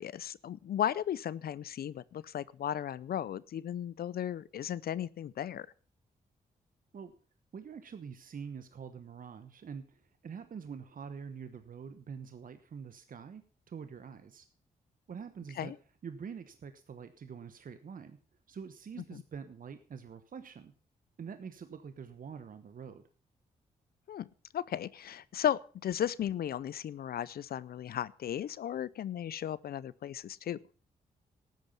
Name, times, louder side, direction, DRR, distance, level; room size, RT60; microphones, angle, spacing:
voice 1, 0.0-5.7 15.5-15.8 19.1-19.2 24.1-24.3 24.5-30.6, left 10 dB, 65° left, 20 dB, 0.5 m, -35 dB
voice 2, 7.5-13.4 13.7-14.5 15.1-15.7 16.0-18.2 18.5-20.7 21.2-23.0, right 6 dB, 55° right, 10 dB, 1.1 m, -45 dB
13.0 x 9.5 x 5.6 m, 0.41 s
cardioid pair, 55°, 17 cm